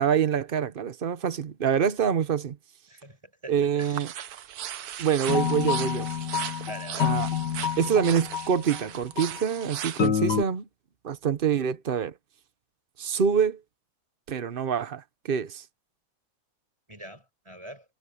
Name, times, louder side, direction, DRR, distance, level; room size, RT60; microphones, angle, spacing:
voice 1, 0.0-2.6 3.5-4.1 5.0-6.1 7.0-7.3 7.8-10.6 11.0-12.1 13.0-13.6 14.3-15.6, right 7 dB, 80° right, 0.4 m, -26 dB
voice 2, 3.4-4.0 6.7-7.2 16.9-17.8, right 1 dB, 15° right, 7.0 m, -42 dB
sound 1, 3.8-10.1, right 11 dB, 60° right, 1.1 m, -38 dB
sound 2, 5.3-8.8 9.2-9.4 10.0-10.4, left 8 dB, 60° left, 2.0 m, -28 dB
omnidirectional pair, 2.2 m